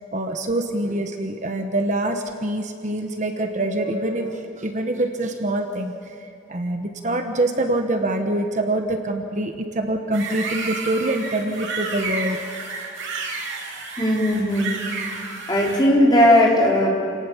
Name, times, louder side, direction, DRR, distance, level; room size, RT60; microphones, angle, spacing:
voice 1, 0.0-12.4 15.7-15.8, right 1 dB, 40° right, 5 dB, 1.2 m, -25 dB
sound 1, 10.1-15.8, right 4 dB, 90° right, 5.1 m, -31 dB
voice 2, 14.0-14.7 15.5-16.9, left 1 dB, 20° left, -3 dB, 4.3 m, -17 dB
28.5 x 18.5 x 7.3 m, 2.6 s
head